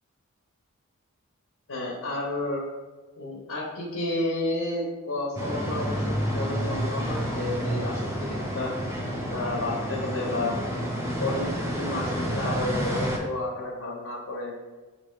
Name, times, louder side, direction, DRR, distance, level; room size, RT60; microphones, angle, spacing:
voice 1, 1.7-2.6 3.2-8.7 9.3-10.5 11.2-14.5, left 2 dB, 65° left, -3 dB, 0.9 m, -31 dB
sound 1, 5.4-13.2, equal, 15° right, 0.7 m, -29 dB
5.4 x 2.9 x 3.2 m, 1.2 s
head